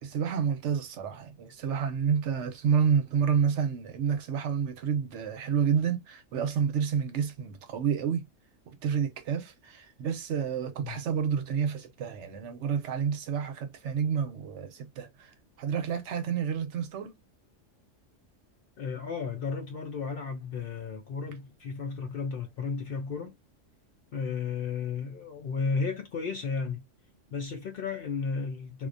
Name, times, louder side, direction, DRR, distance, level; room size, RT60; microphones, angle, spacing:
voice 1, 0.0-8.3 8.7-15.3 15.6-17.1, right 7 dB, 70° right, 0.9 m, -29 dB
voice 2, 18.8-23.4 24.1-26.8 27.3-28.9, left 5 dB, 60° left, 0.6 m, -33 dB
2.3 x 2.1 x 2.5 m
omnidirectional pair, 1.3 m